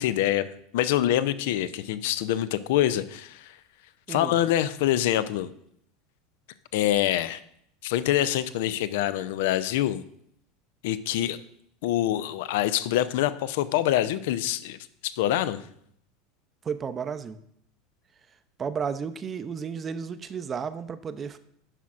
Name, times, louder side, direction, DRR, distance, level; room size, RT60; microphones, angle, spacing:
voice 1, 0.0-3.6 4.1-5.5 6.7-7.4 7.8-10.0 10.8-11.4 11.8-15.6, left 12 dB, 65° left, 14 dB, 0.4 m, -25 dB
voice 2, 16.6-17.4 18.6-21.4, right 6 dB, 30° right, 11 dB, 0.5 m, -33 dB
9.8 x 6.1 x 2.5 m, 0.70 s
hypercardioid pair, 80°, 0 cm